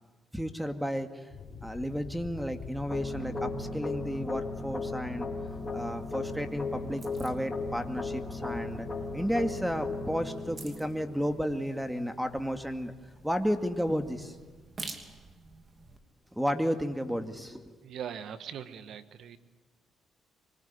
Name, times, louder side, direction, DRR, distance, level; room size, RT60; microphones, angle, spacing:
voice 1, 0.3-1.3 1.6-5.3 5.7-8.9 9.1-12.9 13.2-14.4 16.3-17.7, equal, 5° right, 7 dB, 2.2 m, -32 dB
sound 1, 1.3-10.3, left 4 dB, 60° left, 4.4 m, -47 dB
sound 2, 2.9-11.9, left 3 dB, 20° left, 4.0 m, -37 dB
sound 3, 5.5-16.0, right 3 dB, 40° right, 3.1 m, -50 dB
voice 2, 17.8-19.4, right 8 dB, 70° right, 12 dB, 1.5 m, -40 dB
24.5 x 20.5 x 9.6 m, 1.4 s
cardioid pair, 75°, 0 cm